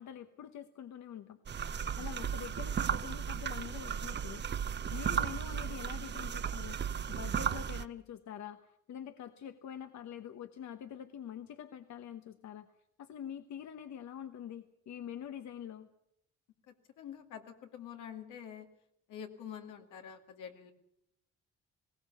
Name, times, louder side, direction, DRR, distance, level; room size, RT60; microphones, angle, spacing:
voice 1, 0.0-1.4 2.0-4.4 4.9-6.8 7.1-12.7 13.0-15.9, left 9 dB, 65° left, 9 dB, 1.1 m, -45 dB
sound 1, 1.5-7.9, right 8 dB, 35° right, 0.7 m, -35 dB
voice 2, 17.0-18.7 19.1-20.7, left 8 dB, 85° left, 5 dB, 2.3 m, -46 dB
20.0 x 17.0 x 8.4 m, 0.77 s
cardioid pair, 90°, 30 cm